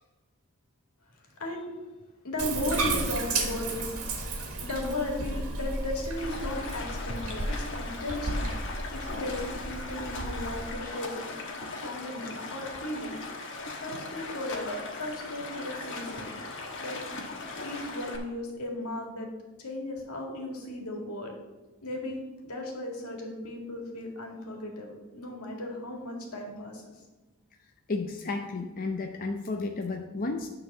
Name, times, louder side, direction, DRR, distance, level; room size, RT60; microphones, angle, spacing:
voice 1, 1.4-1.7 2.2-3.9 4.6-8.5 8.9-11.3 11.8-13.1 13.8-16.2 16.8-17.0 17.6-19.3 19.6-21.3 21.8-26.8, left 1 dB, 85° left, 0 dB, 2.0 m, -36 dB
Bathtub (filling or washing), 2.4-10.7, right 2 dB, 75° right, 1.6 m, -33 dB
Stream, 6.2-18.2, left 3 dB, 55° left, 1.2 m, -39 dB
voice 2, 27.9-30.5, left 3 dB, 40° left, 3 dB, 0.6 m, -32 dB
9.6 x 4.0 x 6.7 m, 1.2 s
head